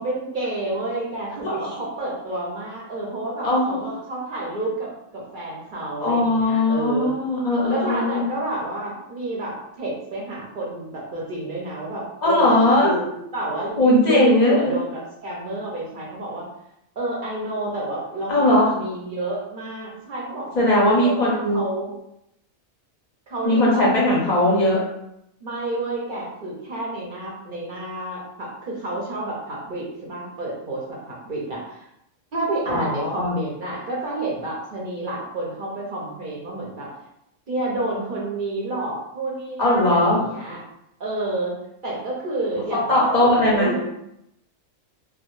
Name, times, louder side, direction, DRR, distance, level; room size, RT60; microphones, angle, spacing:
voice 1, 0.0-7.1 7.7-16.5 17.0-21.9 23.3-24.2 25.4-31.8 32.3-36.9 37.5-40.6 41.0-41.5 41.8-43.8, right 2 dB, 55° right, -4 dB, 0.6 m, -29 dB
voice 2, 3.4-3.9 6.0-8.2 12.2-12.9 13.8-14.8 18.3-18.7 20.5-21.6 23.4-24.8 32.7-33.3 39.6-40.2 42.9-43.7, left 1 dB, 50° left, -6 dB, 0.5 m, -19 dB
2.1 x 2.1 x 2.9 m, 0.80 s
omnidirectional pair, 1.4 m